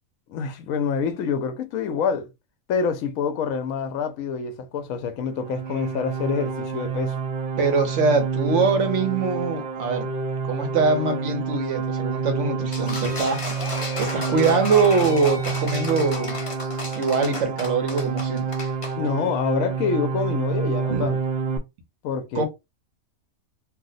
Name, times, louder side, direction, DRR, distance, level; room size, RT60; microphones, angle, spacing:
voice 1, 0.3-2.3 2.7-7.2 19.0-21.2 22.0-22.4, left 6 dB, 75° left, 1.0 m, -26 dB
sound 1, 5.3-21.6, right 5 dB, 80° right, 0.4 m, -28 dB
voice 2, 7.6-10.1 10.4-16.4 17.0-18.5 20.9-21.1 22.3-22.4, right 4 dB, 65° right, 1.0 m, -23 dB
sound 2, 12.7-18.9, left 2 dB, 35° left, 0.6 m, -33 dB
2.7 x 2.0 x 3.9 m
omnidirectional pair, 1.5 m